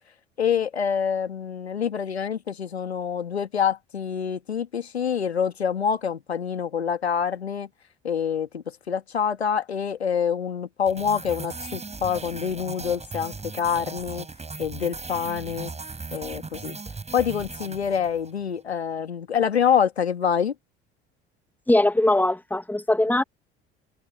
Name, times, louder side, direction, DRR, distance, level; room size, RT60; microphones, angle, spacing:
voice 1, 0.4-7.7 8.0-14.3 14.6-15.7 16.1-16.8 17.1-20.5, left 7 dB, 85° left, 1.9 m, -26 dB
sound 1, 10.9-18.4, right 4 dB, 20° right, 6.7 m, -38 dB
voice 2, 21.7-23.2, left 1 dB, 5° left, 2.3 m, -21 dB
figure-of-eight pair, 60°, 31 cm